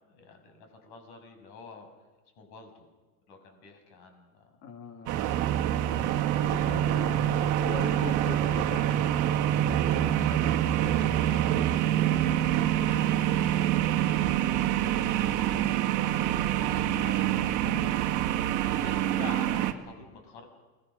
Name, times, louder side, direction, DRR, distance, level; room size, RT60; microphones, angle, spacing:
voice 1, 0.0-1.9 2.4-2.8 3.3-4.5 6.1-7.2 9.9-12.4 13.8-17.5 18.6-20.4, left 4 dB, 50° left, 4 dB, 6.3 m, -48 dB
voice 2, 4.6-5.2 6.4-9.0 12.4-12.8 17.7-18.1, left 5 dB, 30° left, 9 dB, 2.0 m, -41 dB
sound 1, 5.1-19.7, right 11 dB, 40° right, 1.8 m, -26 dB
29.0 x 21.0 x 6.2 m, 1.2 s
supercardioid pair, 145°, 48 cm